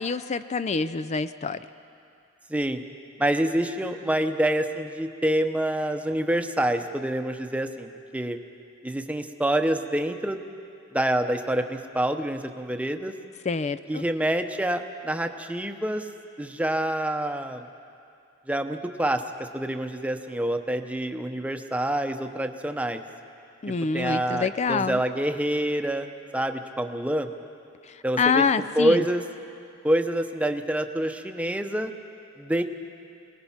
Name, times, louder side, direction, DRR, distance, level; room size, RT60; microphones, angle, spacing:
voice 1, 0.0-1.6 13.5-14.0 23.6-25.0 28.2-29.0, left 5 dB, 35° left, 13 dB, 0.4 m, -26 dB
voice 2, 2.5-2.8 3.2-8.4 8.8-10.4 10.9-13.1 13.9-16.1 16.4-17.6 18.5-23.0 23.9-26.1 26.3-27.3 28.0-28.4 28.7-29.2 29.8-31.9 32.4-32.6, right 1 dB, 5° right, 6 dB, 0.8 m, -26 dB
24.0 x 19.5 x 5.8 m, 2.5 s
head